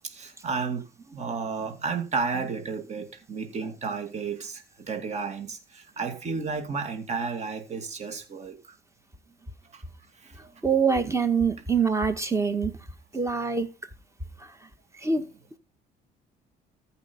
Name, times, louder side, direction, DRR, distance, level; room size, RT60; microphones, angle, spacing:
voice 1, 0.0-8.6 9.7-9.8 10.4-10.5, right 5 dB, 40° right, 2.5 m, -32 dB
voice 2, 10.6-12.7 13.1-13.7 15.0-15.3, right 5 dB, 15° right, 1.7 m, -24 dB
14.0 x 5.5 x 5.4 m
cardioid pair, 110°, 17 cm